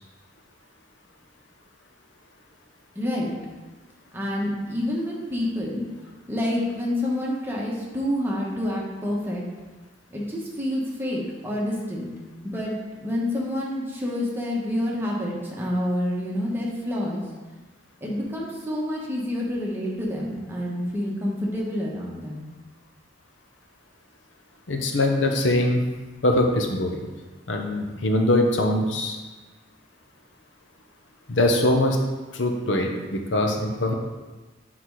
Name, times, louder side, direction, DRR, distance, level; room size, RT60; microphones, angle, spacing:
voice 1, 2.9-3.3 4.1-5.8 6.3-9.4 10.1-12.1 12.4-12.7 13.0-17.2 18.0-22.5, left 1 dB, 10° right, -4 dB, 1.2 m, -28 dB
voice 2, 24.7-25.8 26.2-27.0 27.5-29.2 31.3-32.0 32.3-33.9, left 1 dB, 75° left, 3 dB, 0.8 m, -22 dB
6.0 x 4.2 x 4.7 m, 1.2 s
head